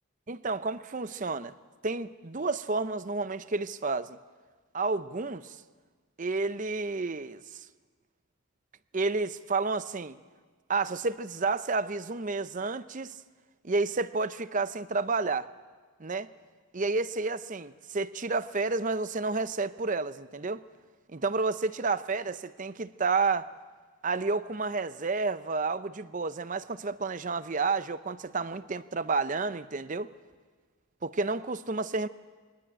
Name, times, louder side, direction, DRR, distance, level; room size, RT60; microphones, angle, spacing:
voice 1, 0.3-1.5 1.8-4.2 4.7-5.6 6.2-7.7 8.9-10.2 10.7-13.2 13.6-15.5 16.0-16.3 16.7-20.6 21.1-23.5 24.0-30.1 31.0-32.1, right 3 dB, 35° right, 0.6 m, -30 dB
23.5 x 19.0 x 8.8 m
head